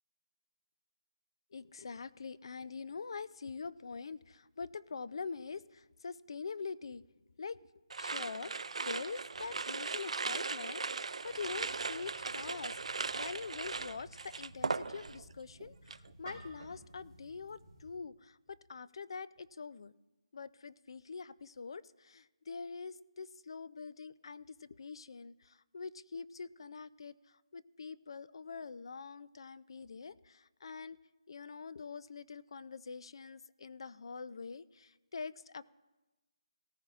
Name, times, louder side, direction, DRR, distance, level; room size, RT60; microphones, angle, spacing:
voice 1, 1.5-7.0 7.4-7.6 8.0-8.6 8.8-12.8 13.1-19.9 20.3-31.0 31.3-35.6, left 5 dB, 50° left, 17 dB, 0.4 m, -45 dB
sound 1, 7.9-15.3 15.6-16.1, right 4 dB, 80° right, 0.4 m, -38 dB
sound 2, 11.2-18.0, right 2 dB, 30° right, 2.5 m, -56 dB
17.5 x 14.5 x 2.4 m, 1.1 s
hypercardioid pair, 170°, 3 cm